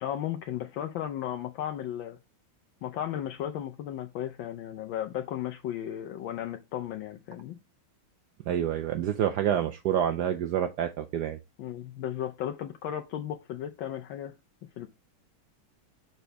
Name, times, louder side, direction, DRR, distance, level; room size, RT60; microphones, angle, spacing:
voice 1, 0.0-2.2 2.8-7.6 11.6-14.4 14.8-14.9, left 11 dB, 70° left, 1.3 m, -35 dB
voice 2, 8.5-11.4, right 10 dB, 80° right, 0.9 m, -28 dB
6.7 x 4.5 x 3.3 m
omnidirectional pair, 2.3 m